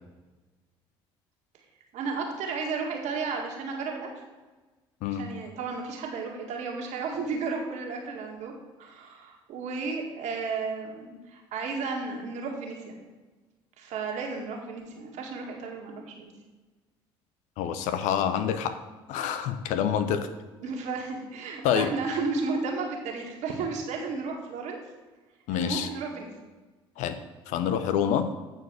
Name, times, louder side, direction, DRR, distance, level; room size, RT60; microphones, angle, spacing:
voice 1, 1.9-4.1 5.1-8.5 8.8-12.9 13.8-16.3 20.6-24.8 25.6-26.3, right 4 dB, 65° right, 1 dB, 1.9 m, -33 dB
voice 2, 17.6-18.8 19.1-20.3 21.6-21.9 25.5-25.9 27.0-27.2 27.5-28.3, left 8 dB, 70° left, 10 dB, 0.8 m, -27 dB
9.1 x 4.6 x 6.3 m, 1.2 s
hypercardioid pair, 65°, 13 cm